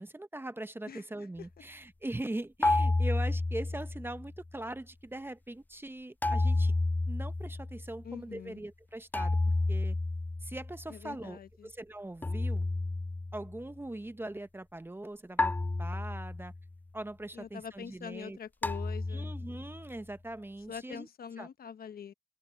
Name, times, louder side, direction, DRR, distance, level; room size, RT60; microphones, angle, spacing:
voice 1, 0.0-6.7 7.1-9.4 9.7-10.0 10.4-12.7 13.3-15.5 15.8-16.5 16.9-18.4 19.1-21.1 21.4-21.5, right 1 dB, 10° right, 1.0 m, -41 dB
voice 2, 0.9-1.3 8.0-8.6 10.9-11.7 17.3-19.3 20.7-22.1, left 7 dB, 50° left, 1.1 m, -44 dB
sound 1, 2.6-4.4 6.2-8.0 9.1-10.9 12.2-13.6 15.4-16.7 18.6-19.9, left 2 dB, 10° left, 0.4 m, -31 dB
cardioid pair, 90°, 20 cm